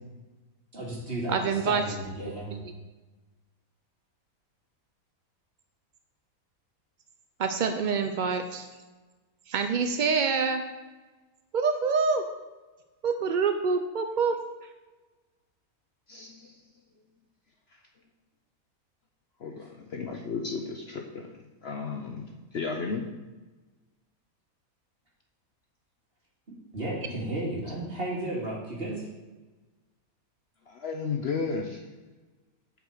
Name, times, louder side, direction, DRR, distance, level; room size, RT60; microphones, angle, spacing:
voice 1, 0.7-2.5 19.6-19.7 26.7-29.1, right 1 dB, 40° right, -4 dB, 2.5 m, -34 dB
voice 2, 1.3-2.0 2.5-2.7 7.4-8.7 9.5-10.7 11.5-12.3 13.0-14.7, right 5 dB, 75° right, 7 dB, 0.4 m, -26 dB
voice 3, 16.1-16.5 19.4-21.3 21.6-22.3 22.5-23.1 30.7-31.8, left 4 dB, 55° left, 3 dB, 0.8 m, -33 dB
8.0 x 5.0 x 6.5 m, 1.2 s
omnidirectional pair, 1.6 m